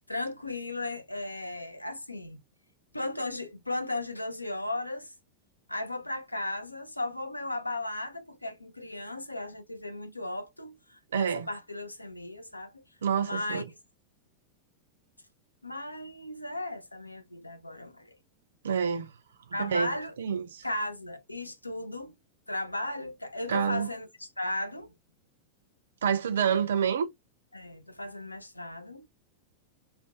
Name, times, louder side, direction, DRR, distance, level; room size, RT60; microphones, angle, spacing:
voice 1, 0.1-2.4 2.9-5.1 5.7-12.8 13.1-13.6 15.6-18.1 19.5-20.1 20.6-22.1 22.5-24.9 27.5-29.1, left 2 dB, 85° left, 0.4 m, -36 dB
voice 2, 11.1-11.5 13.0-13.7 18.6-19.1 19.5-20.6 23.5-23.9 26.0-27.1, right 7 dB, 65° right, 0.4 m, -28 dB
2.4 x 2.0 x 2.6 m
figure-of-eight pair, 90°, 0 cm